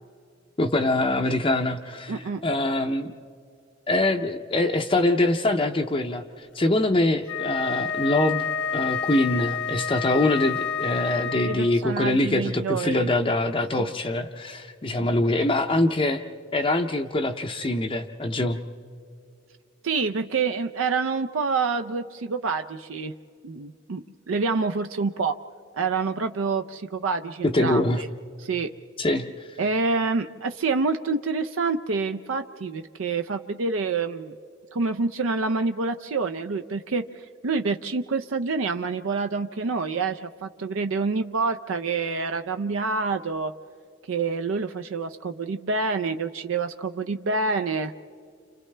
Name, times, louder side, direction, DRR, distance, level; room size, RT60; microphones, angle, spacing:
voice 1, 0.6-3.1 3.9-8.5 8.7-16.2 16.5-18.6 27.4-28.0 29.0-29.6, left 2 dB, 25° left, 3 dB, 0.5 m, -24 dB
voice 2, 2.1-2.4 11.4-13.1 13.8-13.9 15.0-15.1 19.8-23.1 23.4-25.4 25.7-28.1 28.4-28.7 29.6-34.4 34.7-43.5 44.1-47.9, right 4 dB, 80° right, 8 dB, 0.5 m, -27 dB
Wind instrument woodwind instrument, 7.2-11.8, left 7 dB, 85° left, 1.2 m, -29 dB
30.0 x 28.0 x 3.3 m, 2.4 s
head